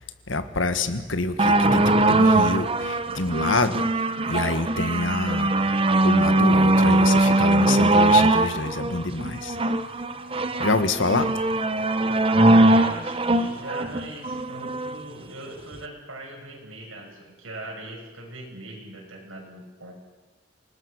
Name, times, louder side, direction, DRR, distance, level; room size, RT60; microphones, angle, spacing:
voice 1, 0.3-3.8 4.3-5.7 6.0-9.6 10.6-11.3, left 3 dB, 70° left, 10 dB, 1.6 m, -26 dB
sound 1, 1.4-14.9 15.7-15.8, right 2 dB, 30° right, 1.0 m, -21 dB
voice 2, 12.3-19.9, right 2 dB, 85° right, 1 dB, 6.6 m, -39 dB
28.0 x 19.0 x 6.6 m, 1.2 s
head